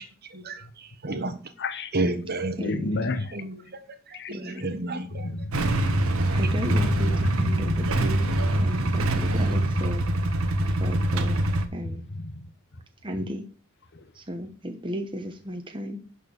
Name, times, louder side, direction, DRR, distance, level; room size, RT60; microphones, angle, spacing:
voice 1, 0.3-1.4 1.9-2.6 3.3-3.6 4.1-5.3, right 2 dB, 50° right, 9 dB, 1.4 m, -31 dB
voice 2, 1.6-1.9 2.6-3.3 4.1-4.3 5.2-6.2 7.4-7.9 12.2-12.5, left 2 dB, 55° left, 11 dB, 1.1 m, -31 dB
voice 3, 2.6-3.2 4.3-4.7 6.3-8.3 8.6-10.1 10.8-11.4 11.7-12.0 13.0-13.4 14.1-16.0, equal, 25° right, 5 dB, 1.1 m, -34 dB
Motorcycle / Engine starting / Idling, 5.5-11.7, right 1 dB, 75° right, 1.3 m, -24 dB
11.5 x 4.5 x 7.0 m, 0.39 s
head